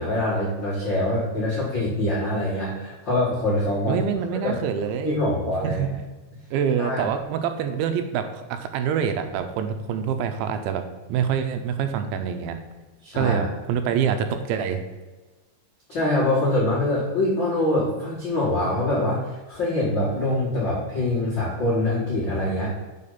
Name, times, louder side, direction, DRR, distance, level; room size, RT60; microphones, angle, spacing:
voice 1, 0.0-4.0 4.4-4.5 5.0-5.9 6.8-7.1 13.0-13.5 15.9-22.8, left 1 dB, 85° left, -9 dB, 1.0 m, -24 dB
voice 2, 3.9-5.2 5.6-5.9 6.5-10.8 11.1-12.6 13.1-14.8, right 7 dB, 85° right, 7 dB, 2.8 m, -26 dB
6.7 x 4.6 x 5.6 m, 1.3 s
omnidirectional pair, 5.5 m